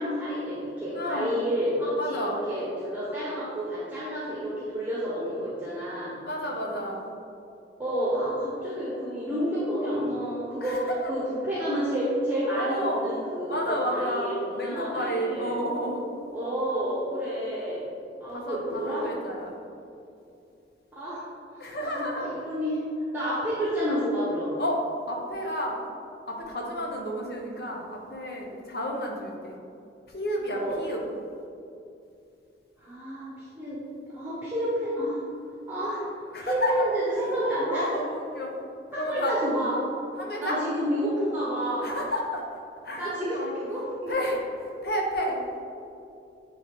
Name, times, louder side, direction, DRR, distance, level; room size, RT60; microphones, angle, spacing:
voice 1, 0.0-6.1 7.8-10.8 11.1-13.5 13.9-15.6 16.3-17.9 18.2-19.1 20.9-21.2 21.5-22.8 23.1-24.5 30.5-30.8 32.8-33.8 34.1-35.2 35.7-36.0 36.4-37.8 38.9-39.7 40.4-41.9 43.0-43.4 43.7-44.1, equal, 10° right, -9 dB, 1.0 m, -29 dB
voice 2, 0.9-1.3 2.0-2.4 6.2-7.1 10.6-11.2 12.5-13.0 13.5-16.0 18.3-19.5 21.6-22.3 24.6-24.8 25.1-25.8 26.3-29.6 30.1-31.0 36.3-36.7 37.1-37.3 37.7-38.5 38.9-39.3 40.2-40.6 41.8-43.5 44.1-45.4, equal, 60° left, -1 dB, 1.0 m, -31 dB
8.9 x 3.2 x 3.7 m, 2.6 s
head